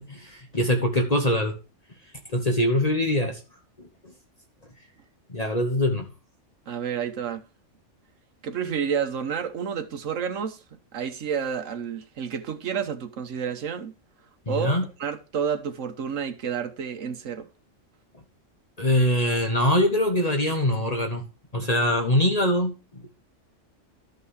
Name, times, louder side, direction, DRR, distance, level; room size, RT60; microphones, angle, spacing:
voice 1, 0.1-1.5 2.3-3.4 4.0-4.1 5.3-6.1 14.5-14.9 18.8-21.2 21.5-23.1, left 1 dB, 35° left, 1.2 m, -23 dB
voice 2, 6.7-7.4 8.4-10.6 10.9-13.9 14.5-17.5, right 7 dB, 80° right, 1.4 m, -30 dB
12.0 x 6.0 x 4.8 m
omnidirectional pair, 1.3 m